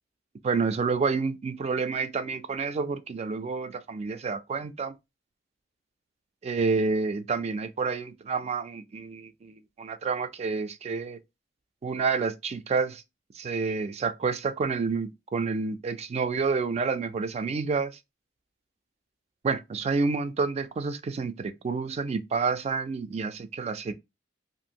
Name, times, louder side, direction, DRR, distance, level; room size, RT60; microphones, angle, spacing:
voice 1, 0.4-4.9 6.4-11.2 11.8-13.0 13.3-17.9 19.4-23.9, right 4 dB, 35° right, 0.3 m, -29 dB
2.5 x 2.5 x 2.8 m
head